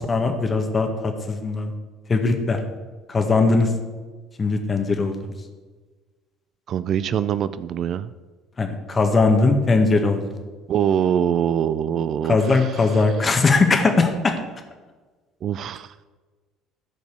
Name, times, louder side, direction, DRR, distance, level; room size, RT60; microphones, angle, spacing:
voice 1, 0.0-1.7 2.1-2.6 3.1-3.7 4.4-5.3 8.6-10.2 12.3-14.3, left 3 dB, 30° left, 5 dB, 1.8 m, -20 dB
voice 2, 6.7-8.1 10.7-12.7 15.4-15.9, right 9 dB, 50° right, 15 dB, 0.4 m, -23 dB
14.0 x 5.3 x 6.7 m, 1.3 s
hypercardioid pair, 60°, 0 cm